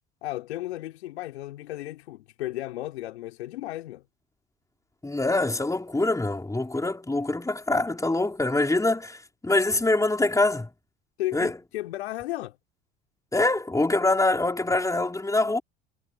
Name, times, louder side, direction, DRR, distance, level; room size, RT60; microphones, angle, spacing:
voice 1, 0.2-4.0 11.2-12.6, left 16 dB, 75° left, 3.4 m, -34 dB
voice 2, 5.0-10.7 11.3-11.5 13.3-15.6, left 2 dB, 10° left, 4.4 m, -24 dB
hypercardioid pair, 65°, 32 cm